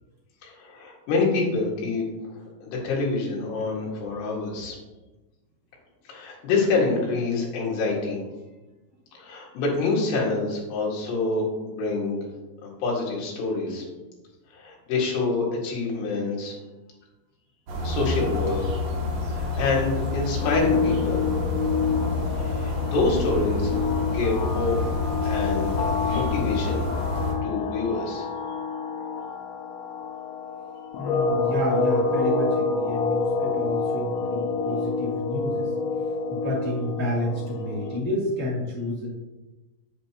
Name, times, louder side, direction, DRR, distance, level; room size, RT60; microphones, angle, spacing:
voice 1, 0.4-4.8 6.1-8.2 9.1-12.3 12.6-13.8 14.5-16.6 17.8-18.7 19.3-21.3 22.3-23.7 24.0-24.8 25.3-26.9 27.4-28.3, left 3 dB, 70° left, -3 dB, 3.7 m, -27 dB
sound 1, 17.7-27.3, left 3 dB, 60° right, 1.9 m, -28 dB
sound 2, 20.4-38.0, left 4 dB, 90° left, 2.0 m, -28 dB
voice 2, 31.0-35.7 36.3-39.1, left 1 dB, 15° left, -8 dB, 0.6 m, -30 dB
8.3 x 7.6 x 2.9 m, 1.1 s
omnidirectional pair, 5.2 m